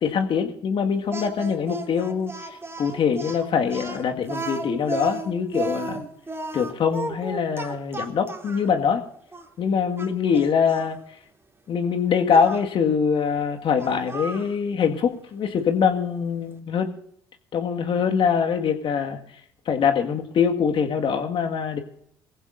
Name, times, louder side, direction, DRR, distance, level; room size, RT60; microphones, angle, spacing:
voice 1, 0.0-2.3 2.8-6.0 6.5-9.0 9.6-11.0 11.7-16.9 17.5-19.2 19.7-21.8, left 6 dB, 50° left, 5 dB, 1.9 m, -23 dB
Speech, 1.1-8.7 9.3-9.5 10.0-10.9 12.3-12.6 13.8-14.5, right 3 dB, 20° right, 3.0 m, -34 dB
22.5 x 15.5 x 2.6 m, 0.68 s
hypercardioid pair, 50°, 11 cm